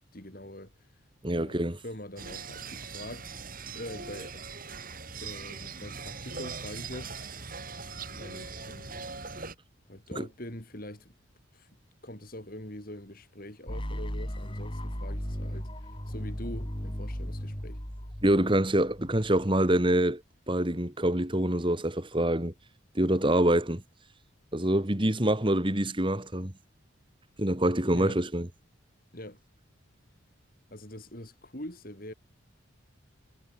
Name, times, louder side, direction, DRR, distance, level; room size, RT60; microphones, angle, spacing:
voice 1, 0.1-0.7 1.4-3.3 3.7-4.4 5.2-7.2 8.1-9.1 9.9-11.1 11.5-11.7 12.0-15.7 16.1-17.8 27.9-28.2 29.1-29.4 30.7-32.1, left 1 dB, 45° left, 4.3 m, -43 dB
voice 2, 1.2-1.8 10.2-10.3 18.2-20.2 20.5-22.5 23.0-23.8 24.5-26.5 27.4-28.5, right 1 dB, 25° right, 1.9 m, -25 dB
sound 1, 2.2-9.6, right 4 dB, 40° right, 7.6 m, -41 dB
sound 2, 13.7-19.6, equal, 25° left, 4.8 m, -36 dB
head